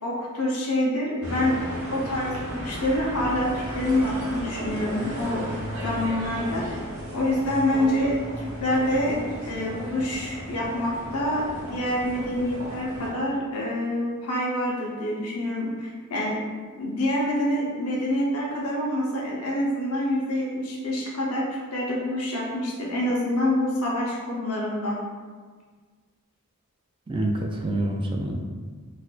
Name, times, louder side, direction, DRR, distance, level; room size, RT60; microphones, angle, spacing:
voice 1, 0.0-1.6 1.9-5.5 5.8-6.6 7.1-16.4 16.8-25.0, left 1 dB, 90° left, -3 dB, 0.8 m, -26 dB
sound 1, 1.2-13.1, equal, 70° right, 0.9 m, -35 dB
voice 2, 27.1-28.4, right 1 dB, 25° right, 1 dB, 0.3 m, -27 dB
4.1 x 2.6 x 2.4 m, 1.5 s
head